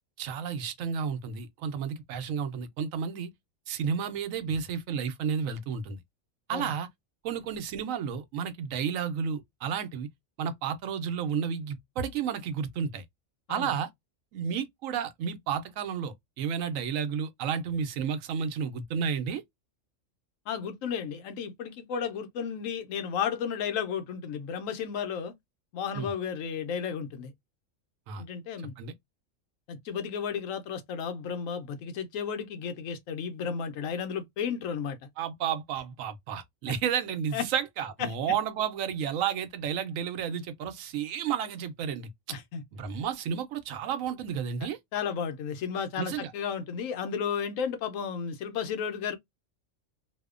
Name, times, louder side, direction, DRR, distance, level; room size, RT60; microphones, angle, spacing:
voice 1, 0.2-3.3 3.7-6.0 6.5-6.9 7.2-10.1 10.4-13.0 13.5-13.9 14.3-19.4 25.9-26.1 28.1-28.2 28.8-28.9 35.2-42.4 42.7-44.8 46.0-46.3, right 7 dB, 90° right, 1.0 m, -32 dB
voice 2, 20.5-25.3 25.7-27.3 28.2-28.7 29.7-35.0 37.3-37.4 42.3-42.6 44.9-49.2, left 7 dB, 90° left, 1.0 m, -33 dB
2.7 x 2.1 x 2.3 m
omnidirectional pair, 1.3 m